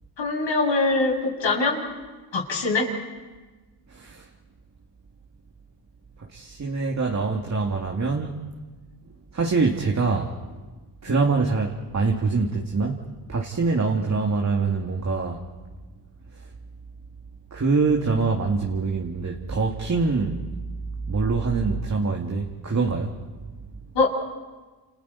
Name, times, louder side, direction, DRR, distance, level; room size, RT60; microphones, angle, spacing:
voice 1, 0.2-1.8 2.3-2.9 23.9-24.1, left 3 dB, 65° left, -1 dB, 6.9 m, -22 dB
voice 2, 3.9-4.2 6.3-8.4 9.3-10.3 11.0-13.0 13.3-15.4 17.5-20.4 21.1-23.2, right 4 dB, 35° right, 0 dB, 2.4 m, -24 dB
29.5 x 29.0 x 4.2 m, 1.3 s
supercardioid pair, 65°, 48 cm